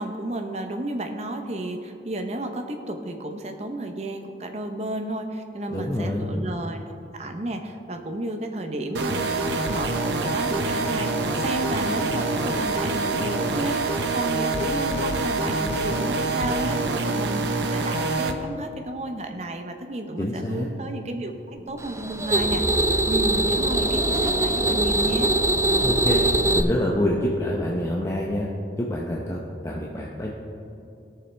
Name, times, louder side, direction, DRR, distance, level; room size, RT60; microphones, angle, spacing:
voice 1, 0.0-6.8 7.1-25.3, right 1 dB, 40° right, 5 dB, 0.8 m, -32 dB
voice 2, 5.7-6.3 20.2-20.7 25.8-26.3 26.5-28.5 28.8-30.3, left 1 dB, 15° left, -3 dB, 0.7 m, -26 dB
sound 1, 8.9-18.3, right 2 dB, 85° right, 0.7 m, -25 dB
sound 2, 21.8-26.6, right 1 dB, 15° right, 0.4 m, -22 dB
17.0 x 6.8 x 3.4 m, 2.7 s
head